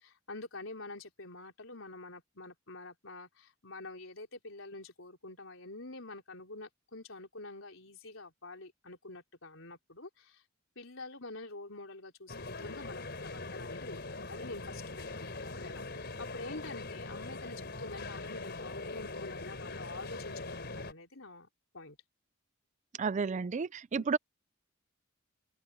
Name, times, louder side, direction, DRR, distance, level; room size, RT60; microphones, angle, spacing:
voice 1, 0.0-10.4 10.8-21.5 21.7-22.0 23.9-24.1, left 2 dB, 70° left, 4.3 m, -47 dB
sound 1, 12.3-20.9, left 3 dB, 55° left, 4.0 m, -42 dB
voice 2, 23.0-24.2, right 5 dB, 35° right, 0.4 m, -32 dB
open air
head